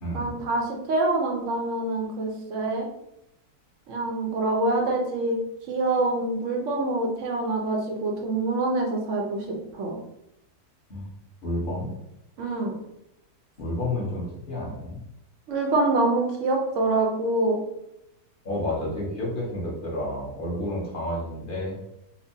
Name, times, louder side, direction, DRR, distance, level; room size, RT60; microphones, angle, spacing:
voice 1, 0.1-2.9 3.9-5.4 5.7-9.5 9.7-10.0 12.4-12.8 15.5-17.6, right 2 dB, 60° right, 1 dB, 0.9 m, -25 dB
voice 2, 11.4-11.9 13.6-15.0 18.4-21.7, left 1 dB, 35° left, -5 dB, 1.2 m, -30 dB
4.4 x 2.2 x 2.7 m, 0.82 s
omnidirectional pair, 1.7 m